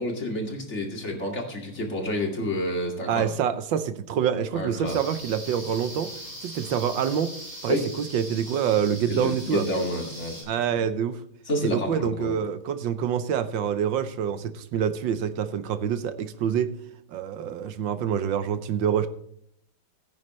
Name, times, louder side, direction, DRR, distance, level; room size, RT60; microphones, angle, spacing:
voice 1, 0.0-3.3 4.5-5.0 7.7-7.9 9.1-10.4 10.7-10.8 11.5-12.4, left 1 dB, 30° left, 1 dB, 2.5 m, -29 dB
voice 2, 3.1-6.1 6.4-7.3 7.6-9.6 10.5-11.2 11.6-16.7 17.1-19.1, right 8 dB, 70° right, 12 dB, 1.4 m, -26 dB
sound 1, 4.8-10.4, right 1 dB, 40° right, 6.6 m, -40 dB
16.0 x 9.7 x 3.2 m, 0.68 s
omnidirectional pair, 2.4 m